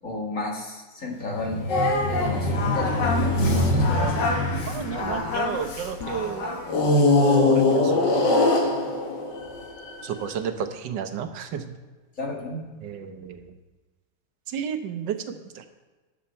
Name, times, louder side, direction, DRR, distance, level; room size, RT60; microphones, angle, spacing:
voice 1, 0.0-4.3 12.2-12.6, left 3 dB, 50° left, 0 dB, 2.1 m, -33 dB
sound 1, 1.2-5.9 6.7-10.1, left 2 dB, 75° left, 2.1 m, -23 dB
Singing, 1.7-6.8, left 3 dB, 90° left, 2.2 m, -28 dB
voice 2, 4.7-6.7 7.0-8.3 10.0-11.7 12.8-13.5 14.5-15.7, right 7 dB, 90° right, 8 dB, 1.6 m, -32 dB
12.5 x 8.8 x 4.4 m, 1.3 s
omnidirectional pair, 1.9 m